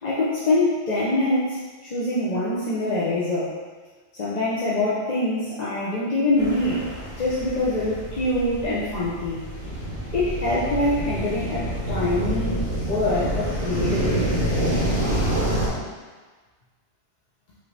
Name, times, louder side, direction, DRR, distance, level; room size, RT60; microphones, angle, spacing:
voice 1, 0.0-3.5 4.1-6.9 7.2-9.4 10.1-14.3, left 2 dB, 40° left, -9 dB, 0.8 m, -24 dB
sound 1, 6.4-15.7, right 1 dB, 25° left, 1.6 m, -27 dB
5.5 x 2.7 x 3.3 m, 1.4 s
omnidirectional pair, 1.2 m